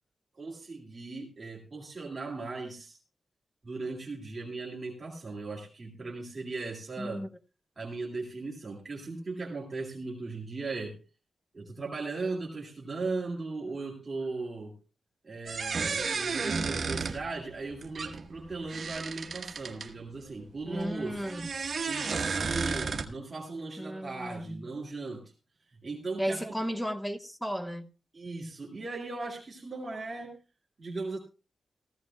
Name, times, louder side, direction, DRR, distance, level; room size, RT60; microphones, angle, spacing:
voice 1, 0.4-3.0 3.6-7.2 7.8-11.0 11.5-14.8 15.2-21.3 21.9-25.2 25.8-26.5 28.1-30.4 30.8-31.2, right 3 dB, 30° right, 2.3 m, -38 dB
voice 2, 7.0-7.3 20.7-21.4 23.8-24.6 26.2-27.9, equal, 5° left, 1.0 m, -34 dB
sound 1, 15.5-19.9 20.8-23.0, right 5 dB, 50° right, 1.3 m, -33 dB
16.5 x 15.0 x 2.3 m
wide cardioid pair, 150°, 0 cm